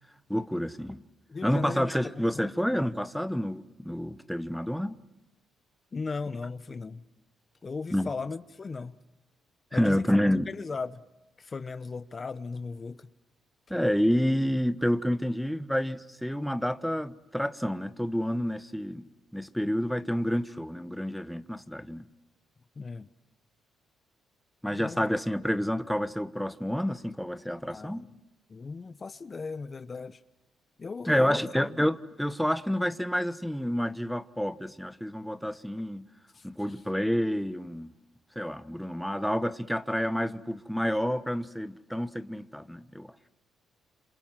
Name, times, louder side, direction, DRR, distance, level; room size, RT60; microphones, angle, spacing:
voice 1, 0.3-1.0 1.4-4.9 7.9-8.1 9.7-10.5 13.7-19.0 19.3-22.0 24.6-28.0 31.1-36.0 36.4-37.9 38.3-43.1, equal, ahead, 1.2 m, -29 dB
voice 2, 1.3-2.5 5.9-7.0 7.6-9.0 9.7-11.0 11.4-13.1 22.8-23.1 24.7-25.1 27.7-28.2 28.5-30.2 30.8-31.8 36.3-36.8, left 4 dB, 35° left, 1.1 m, -37 dB
28.5 x 27.5 x 7.6 m
cardioid pair, 90°, 0 cm